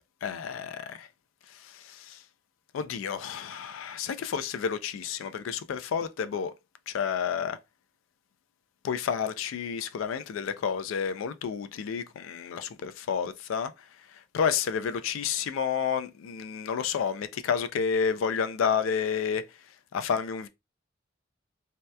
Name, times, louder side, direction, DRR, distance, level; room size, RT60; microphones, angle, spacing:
voice 1, 0.2-1.1 1.6-2.2 2.7-6.5 6.9-7.6 8.8-13.7 14.3-19.4 19.9-20.5, left 7 dB, 90° left, 0.3 m, -30 dB
2.7 x 2.1 x 2.2 m
head